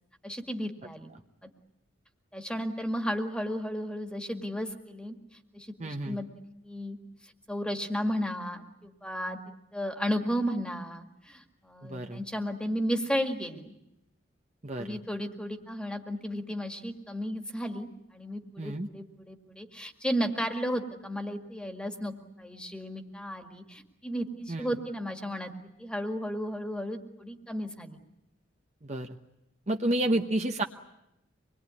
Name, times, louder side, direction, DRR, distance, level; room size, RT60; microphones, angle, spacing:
voice 1, 0.2-1.1 1.4-1.5 2.3-5.2 5.5-6.3 6.6-7.0 7.2-9.4 9.7-13.7 14.8-28.0 30.1-30.2, equal, 5° left, 5 dB, 1.9 m, -34 dB
voice 2, 5.8-6.2 11.8-12.2 14.6-15.0 18.6-18.9 24.5-24.7 28.8-29.2 29.7-30.6, right 1 dB, 35° right, 5 dB, 1.0 m, -30 dB
26.0 x 21.5 x 9.7 m, 0.87 s
head